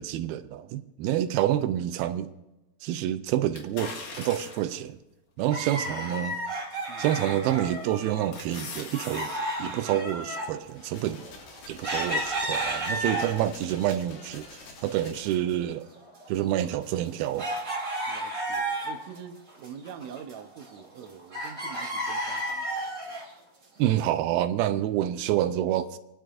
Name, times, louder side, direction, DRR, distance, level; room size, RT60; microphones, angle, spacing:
voice 1, 0.0-2.3 2.8-5.0 5.4-6.4 7.0-9.3 9.6-11.2 11.7-14.5 14.8-15.9 16.3-17.5 23.8-26.0, right 12 dB, 85° right, 2.5 m, -28 dB
sound 1, 3.5-4.8 5.4-5.5 7.1-7.4 7.8-9.4 9.7-9.8, left 3 dB, 60° left, 2.8 m, -40 dB
sound 2, 5.5-8.3 8.5-13.6 14.1-15.0 15.2-15.3 16.0-19.2 19.5-21.0 21.3-23.3 23.9-24.0, right 1 dB, 15° right, 2.0 m, -32 dB
sound 3, 10.6-15.6, left 4 dB, 85° left, 4.0 m, -48 dB
voice 2, 18.1-23.0, right 8 dB, 70° right, 1.7 m, -45 dB
30.0 x 10.5 x 2.5 m
omnidirectional pair, 4.4 m